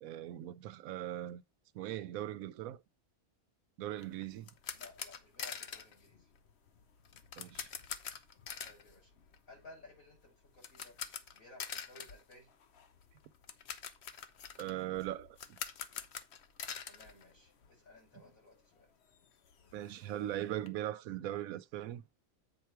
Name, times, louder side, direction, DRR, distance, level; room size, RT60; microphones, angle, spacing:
voice 1, 0.0-1.4 1.7-2.8 3.8-4.5 7.4-7.7 14.6-15.6 19.7-22.0, right 13 dB, 80° right, 1.0 m, -40 dB
sound 1, 4.0-18.0 18.2-18.4 18.8-18.9 19.1-20.7, left 7 dB, 55° left, 1.0 m, -46 dB
voice 2, 4.7-6.3 8.6-9.1 9.5-10.9 11.3-12.5 16.8-18.9, left 2 dB, 70° left, 6.3 m, -57 dB
8.1 x 4.5 x 4.6 m
omnidirectional pair, 1.5 m